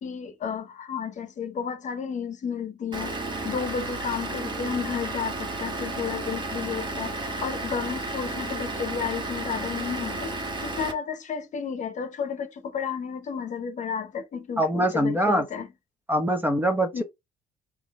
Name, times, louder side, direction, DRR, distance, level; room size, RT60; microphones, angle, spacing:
voice 1, 0.0-15.7 16.9-17.0, left 6 dB, 45° left, 1.0 m, -32 dB
Vehicle / Engine, 2.9-10.9, right 2 dB, 25° right, 1.6 m, -32 dB
voice 2, 14.6-15.5 16.1-17.0, right 1 dB, 10° right, 0.9 m, -23 dB
3.8 x 3.1 x 3.6 m
cardioid pair, 110°, 17 cm